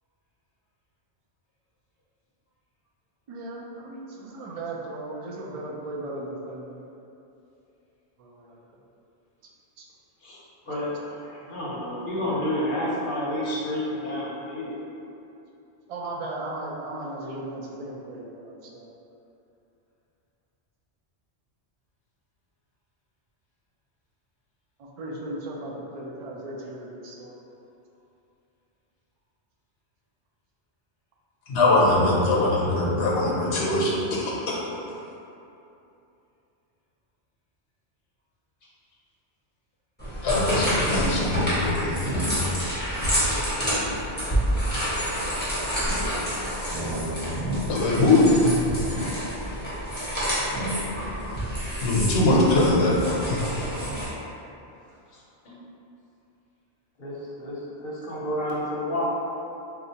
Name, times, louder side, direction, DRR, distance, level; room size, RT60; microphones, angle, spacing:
voice 1, 3.3-6.8 8.2-8.6 9.8-9.9 15.9-18.9 24.8-27.4, right 2 dB, 60° right, -2 dB, 0.4 m, -36 dB
voice 2, 10.7-14.8 55.1-55.6 57.0-59.0, left 1 dB, 55° left, -7 dB, 0.8 m, -30 dB
voice 3, 31.5-34.6 40.2-42.4 47.7-48.6 51.8-53.0 53.3-53.4, left 2 dB, 85° left, -4 dB, 0.9 m, -22 dB
sound 1, 40.0-54.0, equal, 10° left, 1.2 m, -28 dB
4.1 x 2.3 x 2.8 m, 2.8 s
omnidirectional pair, 1.1 m